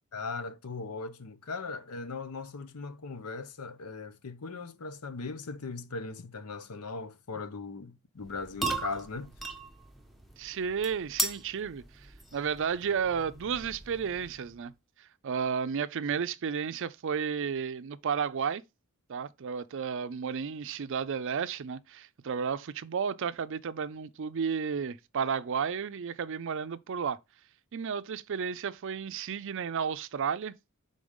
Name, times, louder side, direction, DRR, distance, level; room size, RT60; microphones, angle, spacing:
voice 1, 0.1-9.3, left 4 dB, 80° left, 0.8 m, -39 dB
sound 1, 8.2-14.6, right 2 dB, ahead, 0.7 m, -38 dB
voice 2, 10.4-14.7 15.0-18.6 19.1-27.2 27.7-30.5, right 6 dB, 55° right, 0.4 m, -32 dB
5.1 x 3.8 x 5.3 m
head